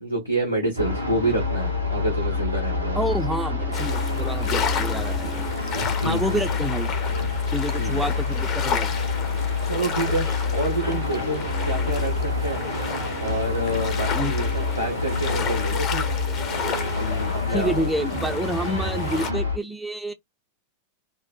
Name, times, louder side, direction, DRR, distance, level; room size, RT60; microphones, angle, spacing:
voice 1, 0.0-3.0 5.7-6.4 7.8-8.0 9.7-12.7 13.2-16.1 16.9-17.9, right 1 dB, 90° left, 0.8 m, -28 dB
sound 1, 0.8-19.6, left 4 dB, 90° right, 0.8 m, -27 dB
voice 2, 3.0-5.5 6.0-7.2 7.5-9.0 14.1-14.4 17.5-20.1, right 1 dB, 5° right, 0.3 m, -28 dB
sound 2, 3.7-19.3, left 6 dB, 35° left, 0.6 m, -32 dB
2.6 x 2.0 x 2.4 m
figure-of-eight pair, 90°, 0 cm